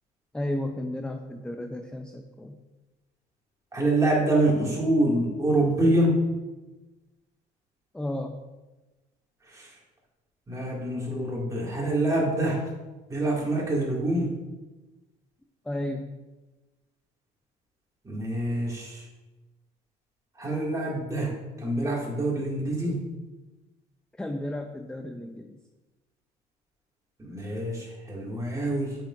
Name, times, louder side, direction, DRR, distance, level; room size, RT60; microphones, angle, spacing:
voice 1, 0.3-2.6 7.9-8.4 15.6-16.1 24.1-25.6, left 1 dB, 5° left, 5 dB, 0.4 m, -33 dB
voice 2, 3.7-6.2 9.5-9.8 10.5-12.7 13.1-14.3 18.0-19.1 20.4-23.0 27.2-29.0, right 1 dB, 20° right, -3 dB, 2.1 m, -26 dB
8.5 x 5.9 x 2.5 m, 1.1 s
cardioid pair, 110°, 17 cm